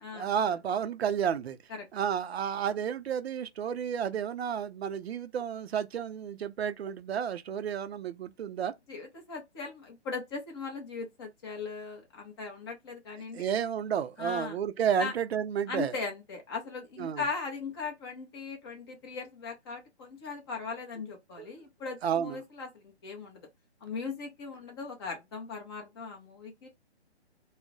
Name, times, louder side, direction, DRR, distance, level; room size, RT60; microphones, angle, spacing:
voice 1, 0.1-1.6 1.9-8.7 13.3-15.9 17.0-17.2 21.4-21.5 22.0-22.4, right 8 dB, 65° right, 0.5 m, -31 dB
voice 2, 8.9-13.5 14.2-14.6 15.0-15.1 15.7-23.5 23.8-26.7, left 4 dB, 25° left, 0.6 m, -39 dB
2.4 x 2.0 x 3.7 m
hypercardioid pair, 140°, 34 cm